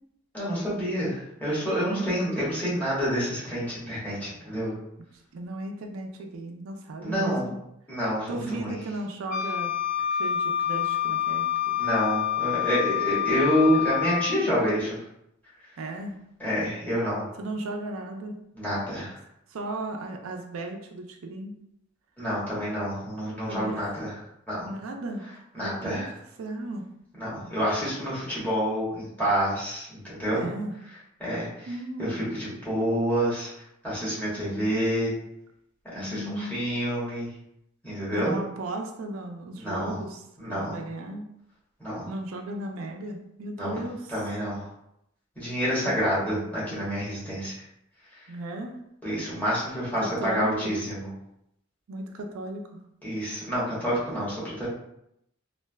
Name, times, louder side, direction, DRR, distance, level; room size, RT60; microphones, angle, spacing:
voice 1, 0.3-4.7 7.0-7.5 7.9-8.7 11.8-15.0 16.4-17.2 18.6-19.1 22.2-24.1 24.5-24.7 25.5-26.1 27.2-30.4 31.2-31.7 32.0-33.5 33.8-35.1 35.9-37.3 37.8-38.3 39.6-40.0 40.4-40.8 41.8-42.1 43.6-43.8 44.1-44.7 45.4-47.5 49.0-51.1 53.0-54.7, equal, 10° left, -9 dB, 1.2 m, -28 dB
voice 2, 1.8-2.2 5.3-7.6 8.3-9.7 10.1-11.5 13.7-13.8 15.8-16.2 17.4-18.3 19.5-21.5 23.5-23.9 24.7-26.1 26.4-26.9 30.3-30.7 31.7-32.2 34.4-34.7 35.9-36.6 38.1-40.2 40.5-41.3 42.1-44.3 45.8-46.2 48.3-48.8 50.0-50.7 51.9-52.8, right 2 dB, 85° right, 3 dB, 0.4 m, -36 dB
Wind instrument woodwind instrument, 9.3-14.4, left 10 dB, 35° left, 0.4 m, -27 dB
3.2 x 2.4 x 2.2 m, 0.79 s
head